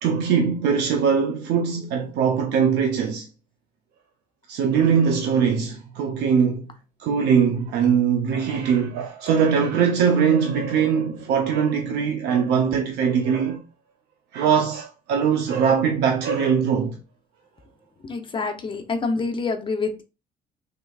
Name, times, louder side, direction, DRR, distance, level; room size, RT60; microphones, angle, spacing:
voice 1, 0.0-3.3 4.5-6.7 7.0-13.6 14.3-17.0, right 7 dB, 80° right, 0.6 m, -21 dB
voice 2, 18.0-20.0, left 4 dB, 30° left, 0.6 m, -27 dB
3.5 x 3.3 x 2.3 m
cardioid pair, 110°, 17 cm